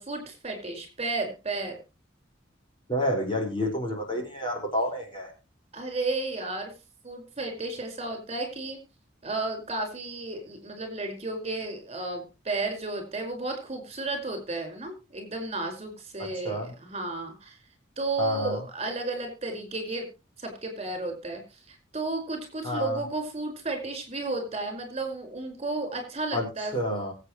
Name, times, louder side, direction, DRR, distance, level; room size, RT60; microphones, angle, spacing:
voice 1, 0.0-1.8 5.7-6.7 7.0-8.8 9.2-17.6 18.0-20.1 20.4-26.8, right 2 dB, 30° right, 5 dB, 5.2 m, -33 dB
voice 2, 2.9-5.3 16.2-16.7 18.2-18.6 22.6-23.0 26.3-26.5 26.7-27.1, equal, 25° left, 2 dB, 5.1 m, -29 dB
24.0 x 8.5 x 3.2 m, 0.30 s
head